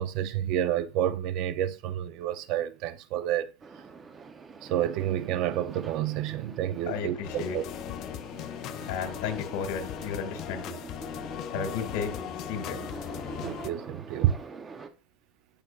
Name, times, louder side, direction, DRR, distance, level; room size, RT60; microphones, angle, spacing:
voice 1, 0.0-3.5 4.6-7.6 11.5-11.7 13.4-14.4, right 11 dB, 50° right, 0.7 m, -29 dB
sound 1, 3.6-14.9, right 4 dB, 20° right, 0.8 m, -45 dB
voice 2, 6.9-7.6 8.9-10.8 11.5-12.1 12.5-12.8, left 7 dB, 75° left, 2.1 m, -33 dB
sound 2, 7.2-13.7, left 12 dB, 40° left, 0.5 m, -38 dB
14.5 x 5.3 x 2.5 m
cardioid pair, 170°, 0 cm